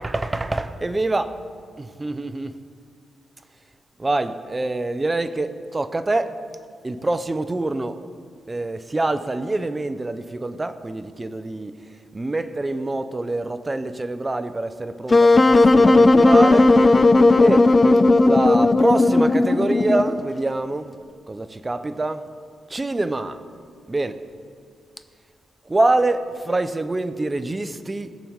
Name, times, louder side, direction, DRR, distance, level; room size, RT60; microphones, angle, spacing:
voice 1, 0.0-1.4 1.8-2.5 4.0-6.4 6.8-8.0 8.5-11.7 12.1-16.8 17.4-17.8 18.2-20.9 21.3-22.3 22.7-23.4 23.9-24.2 25.7-28.1, right 2 dB, 20° right, 0.7 m, -25 dB
Wind instrument woodwind instrument, 15.1-20.2, left 2 dB, 25° left, 0.5 m, -15 dB
20.0 x 6.9 x 4.7 m
cardioid pair, 95°, 0 cm